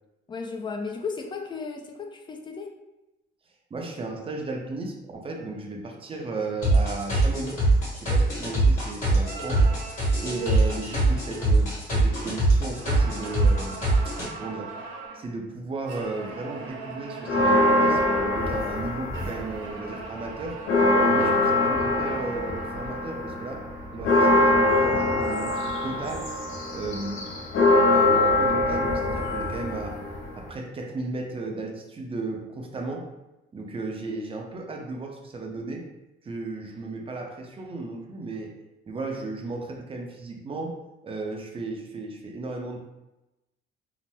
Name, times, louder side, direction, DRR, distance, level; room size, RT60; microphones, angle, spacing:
voice 1, 0.3-2.7, left 4 dB, 25° left, 3 dB, 0.4 m, -34 dB
voice 2, 3.7-7.6 7.9-9.7 10.2-14.8 15.1-18.0 18.3-20.6 21.0-23.7 23.9-26.3 26.7-27.3 27.9-30.0 30.4-33.1 33.5-35.9 36.2-38.5 38.9-40.8 41.0-42.9, right 3 dB, 25° right, 1 dB, 0.5 m, -35 dB
sound 1, 6.6-14.3, right 2 dB, 40° left, 1.4 m, -23 dB
sound 2, 9.2-12.3 12.7-15.3 15.8-18.5 19.1-23.3, right 4 dB, 75° right, 0.6 m, -41 dB
sound 3, 17.2-19.6 20.0-30.5, left 2 dB, 75° left, 0.6 m, -23 dB
2.7 x 2.0 x 3.3 m, 0.97 s
cardioid pair, 105°, 20 cm